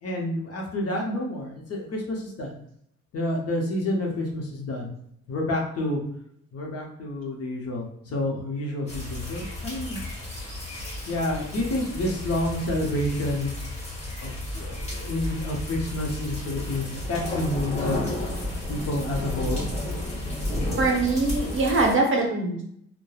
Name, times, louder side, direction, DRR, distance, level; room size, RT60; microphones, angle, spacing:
voice 1, 0.0-2.5 3.1-4.9 5.3-6.0 6.5-10.0 11.1-13.5 14.2-18.1 18.7-19.6, left 1 dB, 55° left, 0 dB, 0.8 m, -29 dB
sound 1, 8.9-22.0, left 1 dB, 20° left, 1.3 m, -32 dB
voice 2, 20.8-22.7, right 3 dB, 45° right, 0 dB, 0.7 m, -23 dB
3.0 x 2.2 x 2.3 m, 0.69 s
cardioid pair, 90°, 30 cm